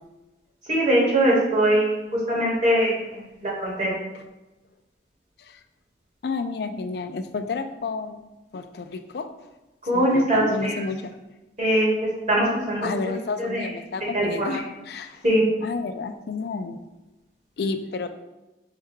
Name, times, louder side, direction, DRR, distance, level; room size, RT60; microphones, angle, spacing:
voice 1, 0.7-3.9 9.8-10.8 11.6-11.9 12.3-12.9 13.4-13.7 14.1-14.6 15.2-15.5, right 1 dB, 40° right, -4 dB, 1.2 m, -22 dB
voice 2, 6.2-8.2 8.5-9.3 9.9-11.1 12.8-15.2 15.6-16.8 17.6-18.1, left 4 dB, 55° left, 8 dB, 0.3 m, -31 dB
4.7 x 2.2 x 4.6 m, 1.0 s
head